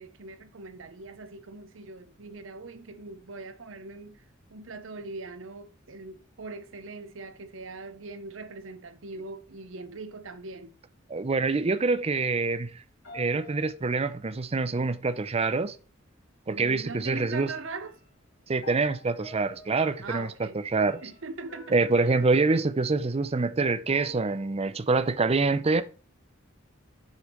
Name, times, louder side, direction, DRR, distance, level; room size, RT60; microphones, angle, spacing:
voice 1, 0.0-4.2 4.5-10.8 16.5-18.0 20.0-20.6 21.0-22.2, right 3 dB, 75° right, 0.8 m, -41 dB
voice 2, 11.1-12.7 13.1-15.8 16.5-17.5 18.5-20.3 20.7-21.0 21.7-25.8, right 3 dB, 30° right, 0.6 m, -25 dB
sound 1, 13.0-14.5 15.7-15.8 16.3-16.8 17.3-23.2 23.9-24.7, left 1 dB, 80° left, 2.1 m, -50 dB
6.4 x 5.4 x 3.1 m
head